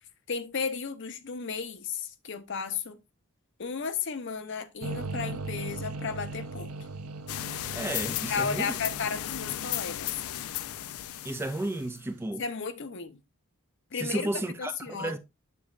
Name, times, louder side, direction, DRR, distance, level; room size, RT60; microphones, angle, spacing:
voice 1, 0.3-3.0 3.6-6.7 8.3-10.2 12.4-13.2 13.9-14.3 14.6-15.2, left 5 dB, 55° left, 0.7 m, -34 dB
sound 1, 4.8-11.9, right 3 dB, 90° right, 0.7 m, -40 dB
sound 2, 7.3-12.0, left 13 dB, 75° left, 0.3 m, -35 dB
voice 2, 7.7-8.7 11.2-12.4 14.0-15.2, right 1 dB, 10° right, 0.4 m, -33 dB
7.2 x 6.9 x 2.4 m
head